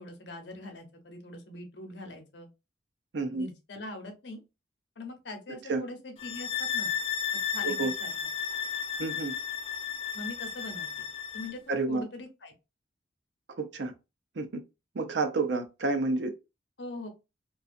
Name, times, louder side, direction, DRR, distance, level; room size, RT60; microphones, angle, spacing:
voice 1, 0.0-2.5 3.3-4.4 5.0-6.9 7.5-8.1 10.1-11.1 11.3-12.5 16.8-17.1, left 2 dB, 75° left, 0.7 m, -42 dB
voice 2, 3.1-3.5 5.7-5.8 7.6-7.9 9.0-9.3 11.7-12.0 13.6-13.9 14.4-14.6 14.9-16.3, right 3 dB, 75° right, 0.6 m, -29 dB
sound 1, 6.2-11.6, left 8 dB, 30° left, 0.3 m, -33 dB
2.5 x 2.3 x 2.4 m
head